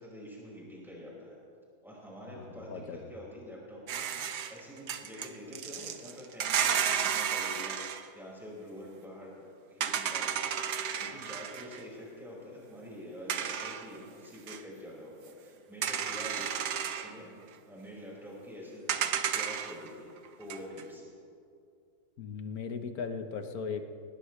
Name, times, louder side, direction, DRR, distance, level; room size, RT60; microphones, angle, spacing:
voice 1, 0.0-1.4 1.8-4.1 4.5-17.4 17.7-19.1 19.3-20.1 20.4-21.1, equal, ahead, -6 dB, 5.3 m, -46 dB
voice 2, 2.3-3.1 22.2-23.8, left 5 dB, 65° left, 7 dB, 1.5 m, -38 dB
sound 1, 3.9-8.1 9.8-11.8 13.3-14.0 14.5-14.6 15.8-17.1 18.9-19.9 20.3-20.8, right 8 dB, 80° right, 1.4 m, -32 dB
22.5 x 20.0 x 3.2 m, 2.4 s
omnidirectional pair, 1.7 m